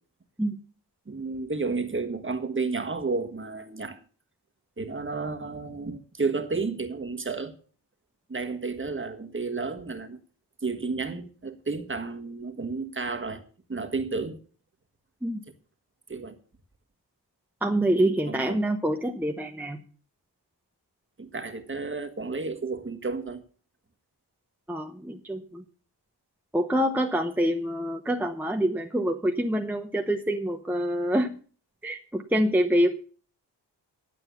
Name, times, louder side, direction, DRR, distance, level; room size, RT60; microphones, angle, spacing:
voice 1, 1.1-4.0 4.8-7.5 8.3-10.2 10.6-13.4 13.7-14.4 16.1-16.4 18.3-18.6 21.2-23.4, right 4 dB, 30° right, 1.6 m, -32 dB
voice 2, 17.6-19.8 24.7-25.6 26.5-31.4 31.8-33.0, equal, 5° right, 0.9 m, -26 dB
11.5 x 8.0 x 6.9 m
wide cardioid pair, 120°, 42 cm